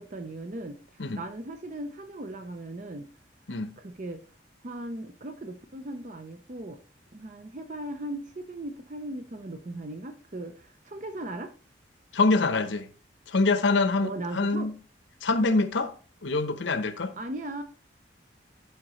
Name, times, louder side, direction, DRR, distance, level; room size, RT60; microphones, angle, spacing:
voice 1, 0.0-3.1 3.8-4.2 4.6-6.8 7.1-11.5 14.0-14.7 17.2-17.6, right 1 dB, 40° right, 0.5 m, -38 dB
voice 2, 12.1-12.9 13.3-14.7 15.2-15.9 16.2-17.1, left 3 dB, 80° left, 0.8 m, -25 dB
11.5 x 5.0 x 3.0 m
head